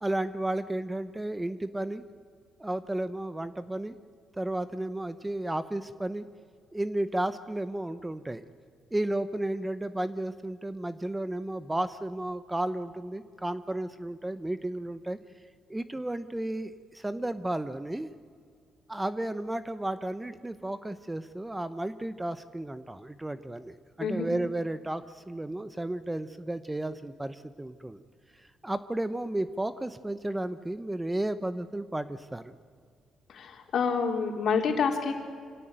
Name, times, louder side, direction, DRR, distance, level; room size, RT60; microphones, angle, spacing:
voice 1, 0.0-2.0 2.6-3.9 4.4-6.3 6.7-8.5 8.9-15.2 15.7-18.1 18.9-28.0 28.4-32.6, right 1 dB, 10° right, 12 dB, 0.9 m, -33 dB
voice 2, 33.3-35.1, left 5 dB, 65° left, 3 dB, 3.5 m, -28 dB
25.5 x 17.0 x 9.0 m, 2.1 s
cardioid pair, 90°, 0 cm